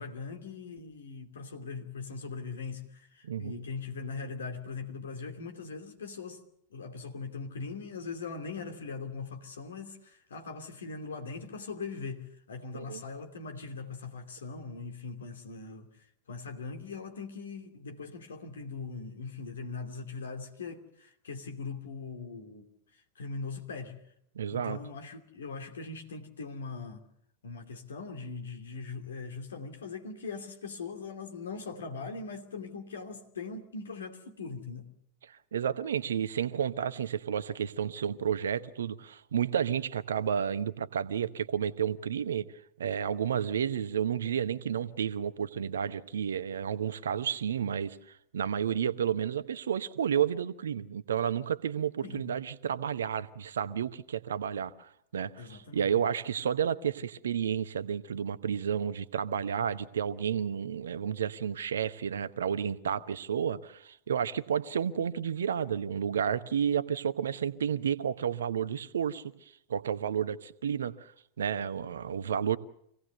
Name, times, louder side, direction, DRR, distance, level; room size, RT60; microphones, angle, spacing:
voice 1, 0.0-6.4 6.7-15.9 16.3-22.6 23.2-24.0 24.5-27.0 27.4-34.9 52.0-52.3 55.4-55.9, left 4 dB, 65° left, 2.7 m, -40 dB
voice 2, 3.2-3.6 12.7-13.0 24.3-24.8 35.2-42.5 42.8-48.0 48.3-69.3 69.7-71.1 71.4-72.6, right 8 dB, 65° right, 1.0 m, -31 dB
25.5 x 17.5 x 6.9 m
figure-of-eight pair, 90°, 0 cm